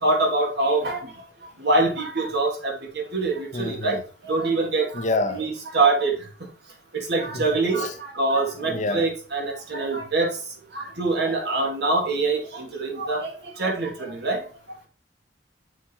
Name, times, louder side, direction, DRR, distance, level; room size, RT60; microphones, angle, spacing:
voice 1, 0.0-1.0 1.6-2.7 3.1-4.0 4.2-4.9 5.3-6.1 7.1-10.3 10.7-13.3 13.6-14.4, right 3 dB, 65° right, 2.4 m, -24 dB
voice 2, 3.5-4.0 4.9-5.4 7.3-7.5 7.8-7.9 8.6-9.1, left 2 dB, 45° left, 1.0 m, -27 dB
6.7 x 4.6 x 4.5 m
head